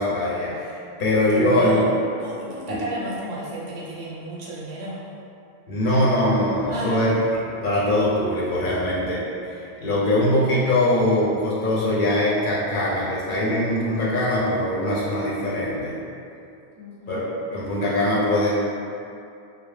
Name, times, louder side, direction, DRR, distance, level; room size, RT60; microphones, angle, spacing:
voice 1, 0.0-1.8 2.7-2.8 5.7-7.1 7.5-15.9 17.1-17.2 17.5-18.5, left 1 dB, 60° left, -7 dB, 0.6 m, -22 dB
voice 2, 1.3-1.9 2.2-5.0 6.7-7.1 16.8-17.2, right 1 dB, 85° right, -6 dB, 0.9 m, -32 dB
2.2 x 2.0 x 3.1 m, 2.5 s
omnidirectional pair, 1.1 m